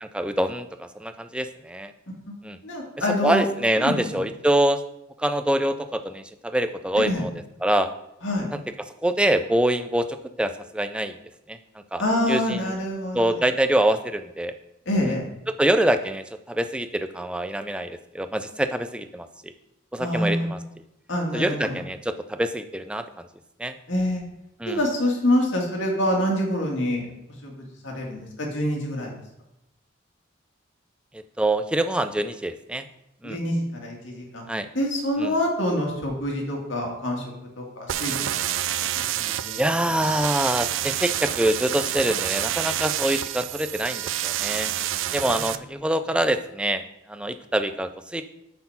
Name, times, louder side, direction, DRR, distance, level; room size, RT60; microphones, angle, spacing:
voice 1, 0.0-1.9 2.4-2.6 3.2-4.8 5.2-7.3 7.6-7.9 8.5-8.6 9.0-11.2 11.5-11.6 11.9-12.0 12.3-12.7 13.1-14.5 15.6-19.5 19.9-20.6 21.3-23.3 23.6-23.7 24.6-24.8 31.1-32.9 33.2-33.4 34.5-34.7 35.2-35.3 39.6-44.7 45.1-46.8 47.1-48.2, right 1 dB, 5° right, 9 dB, 0.3 m, -25 dB
voice 2, 2.6-3.4 3.8-4.2 7.1-7.2 8.2-8.5 12.0-13.3 14.9-15.2 20.0-20.6 21.1-21.7 23.9-24.2 24.7-27.1 27.4-29.1 33.2-34.4 34.7-37.2 37.6-38.3 39.0-39.6 45.1-45.2, left 1 dB, 80° left, 0 dB, 2.1 m, -26 dB
sound 1, 37.9-45.6, right 12 dB, 85° right, 0.4 m, -28 dB
7.8 x 4.3 x 5.6 m, 0.85 s
head